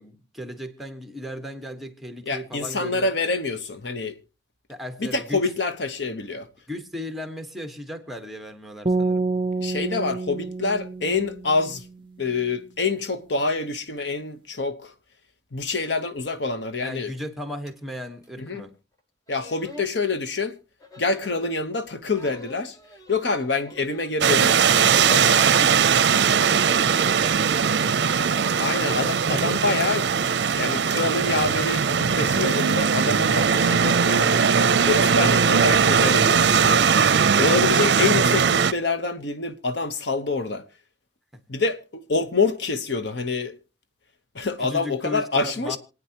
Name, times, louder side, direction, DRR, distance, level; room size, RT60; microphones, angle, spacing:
voice 1, 0.0-3.1 4.7-5.5 6.7-9.3 16.8-18.7 25.1-26.1 26.4-28.1 28.3-29.1 41.3-41.4 44.6-45.8, equal, ahead, 1.3 m, -36 dB
voice 2, 2.3-4.2 5.0-6.5 9.6-11.8 12.2-14.9 15.5-17.1 18.4-18.6 19.3-20.6 21.0-22.8 23.1-25.4 28.6-34.4 34.8-37.0 37.4-40.6 41.5-43.6 44.3-45.8, left 3 dB, 75° left, 1.0 m, -26 dB
sound 1, 8.9-12.0, right 3 dB, 30° right, 0.6 m, -28 dB
sound 2, 17.7-17.8 18.2-18.3 19.0-19.1 19.3-19.9 20.8-21.5 22.1-24.1 24.4-25.7 26.7-32.4, left 1 dB, 20° left, 1.3 m, -47 dB
sound 3, 24.2-38.7, right 6 dB, 70° right, 0.5 m, -20 dB
27.0 x 9.2 x 2.9 m
head